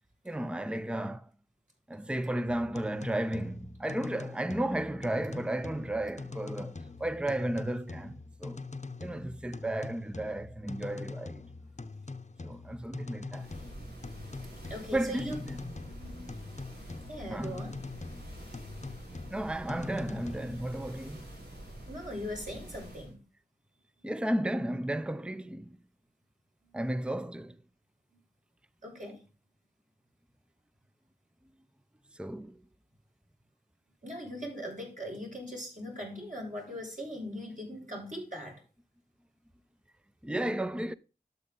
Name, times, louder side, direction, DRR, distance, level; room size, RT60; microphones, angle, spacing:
voice 1, 0.2-1.3 1.9-8.6 9.0-11.5 12.4-13.5 14.9-15.6 17.3-17.7 19.3-21.3 24.0-25.8 26.7-27.6 32.1-32.6 40.2-40.9, right 1 dB, 5° right, 0.6 m, -33 dB
sound 1, 2.5-20.6, left 3 dB, 45° left, 0.8 m, -44 dB
sound 2, 13.3-23.1, right 1 dB, 90° right, 5.2 m, -47 dB
voice 2, 14.7-15.4 16.0-16.3 17.1-17.7 21.9-23.2 26.6-26.7 28.8-29.2 34.0-38.6, equal, 50° right, 6.9 m, -40 dB
11.5 x 8.5 x 3.8 m
wide cardioid pair, 55°, 16 cm